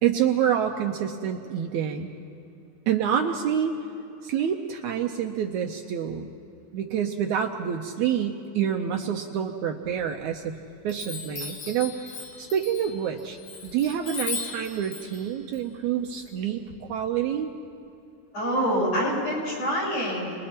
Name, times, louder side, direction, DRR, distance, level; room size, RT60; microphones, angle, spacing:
voice 1, 0.0-2.1 2.9-3.8 4.2-6.3 6.7-10.5 10.8-17.5, right 9 dB, 70° right, 3 dB, 2.0 m, -27 dB
Chime, 9.8-10.5 10.9-16.7, left 5 dB, 75° left, 3.7 m, -38 dB
voice 2, 18.3-20.3, equal, 50° left, -7 dB, 8.1 m, -26 dB
29.5 x 21.5 x 4.4 m, 2.8 s
omnidirectional pair, 3.8 m